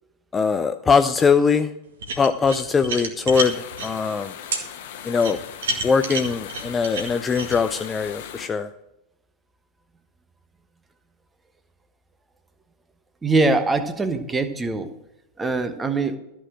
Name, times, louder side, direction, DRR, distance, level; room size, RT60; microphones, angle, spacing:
voice 1, 0.3-1.7 2.2-4.3 5.0-5.4 5.8-8.7, left 5 dB, 15° left, 9 dB, 0.5 m, -21 dB
sound 1, 2.0-3.9 4.5-4.6 5.2-7.6, right 2 dB, 60° right, 2.0 m, -29 dB
sound 2, 3.3-8.5, left 9 dB, 55° left, 1.2 m, -39 dB
voice 2, 13.2-14.9 15.4-16.2, right 3 dB, 15° right, 10 dB, 1.2 m, -22 dB
13.5 x 6.3 x 7.5 m, 0.89 s
figure-of-eight pair, 90°, 0 cm